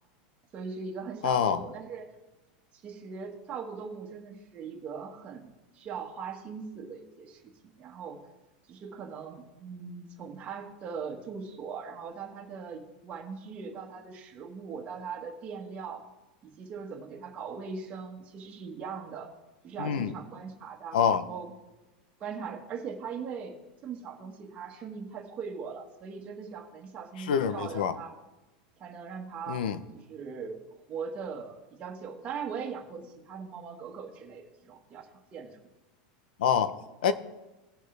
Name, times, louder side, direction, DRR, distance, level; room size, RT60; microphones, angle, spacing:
voice 1, 0.5-2.1 2.8-5.5 5.7-7.4 7.8-8.2 8.7-16.0 16.4-19.3 19.6-21.5 22.2-23.6 23.8-28.1 28.8-29.7 29.9-30.6 30.9-35.1 35.3-35.6, right 6 dB, 25° right, 1.6 m, -40 dB
voice 2, 1.2-1.6 19.8-20.1 20.9-21.2 27.3-27.9 29.5-29.8 36.4-36.7 37.0-37.1, left 8 dB, 90° left, 0.8 m, -25 dB
17.5 x 6.5 x 3.4 m
supercardioid pair, 145°, 5 cm